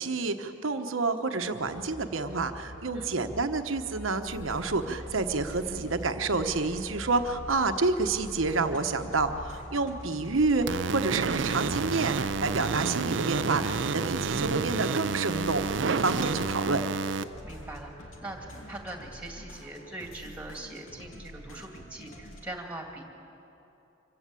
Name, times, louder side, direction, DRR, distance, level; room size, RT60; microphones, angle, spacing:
voice 1, 0.0-16.8, right 3 dB, 85° right, 7 dB, 1.1 m, -29 dB
sound 1, 1.4-18.6, equal, 70° left, 6.8 m, -47 dB
sound 2, 4.2-22.4, equal, 90° left, 2.7 m, -48 dB
sound 3, 10.7-17.2, right 4 dB, 65° right, 0.5 m, -29 dB
voice 2, 17.4-23.0, right 2 dB, 10° right, 2 dB, 2.4 m, -42 dB
25.5 x 15.0 x 8.4 m, 2.9 s
head